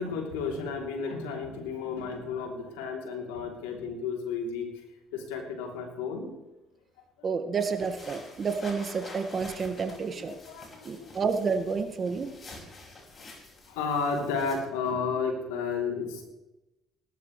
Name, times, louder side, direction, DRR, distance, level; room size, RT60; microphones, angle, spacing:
voice 1, 0.0-4.6 5.1-6.3 9.8-11.1 13.7-16.2, left 5 dB, 85° left, 1 dB, 3.2 m, -32 dB
voice 2, 7.2-10.4 10.8-12.3, right 5 dB, 40° right, 7 dB, 1.7 m, -30 dB
sound 1, 7.6-14.6, left 2 dB, 35° left, 5.6 m, -48 dB
19.0 x 12.5 x 3.3 m, 0.99 s
hypercardioid pair, 65°, 0 cm